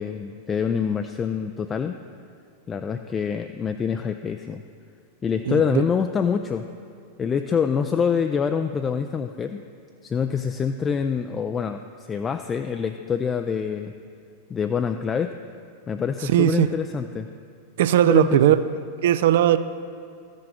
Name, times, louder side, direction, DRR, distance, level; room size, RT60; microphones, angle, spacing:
voice 1, 0.0-2.0 2.7-4.6 5.2-6.7 7.2-9.6 10.0-13.9 14.5-15.3 15.9-17.3 18.0-18.4, left 6 dB, 20° left, 7 dB, 0.3 m, -25 dB
voice 2, 5.5-5.8 16.2-16.7 17.8-18.6 19.0-19.6, right 12 dB, 55° right, 13 dB, 0.4 m, -18 dB
13.5 x 6.3 x 4.2 m, 2.3 s
figure-of-eight pair, 90°, 0 cm